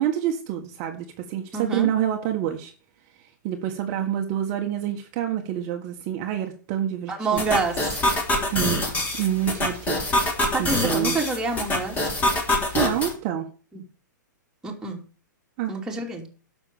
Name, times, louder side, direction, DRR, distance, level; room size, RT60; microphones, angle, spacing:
voice 1, 0.0-2.7 3.2-7.4 8.5-10.0 10.6-11.1 12.7-13.5 15.6-15.7, right 11 dB, 35° right, 3 dB, 1.6 m, -27 dB
voice 2, 1.5-1.9 7.1-8.0 10.5-12.0 13.7-13.8 14.6-15.0 15.7-16.3, right 3 dB, 5° right, -1 dB, 2.9 m, -27 dB
sound 1, 7.4-13.1, left 1 dB, 15° left, 3.6 m, -25 dB
11.5 x 7.0 x 7.0 m, 0.38 s
hypercardioid pair, 150°, 10 cm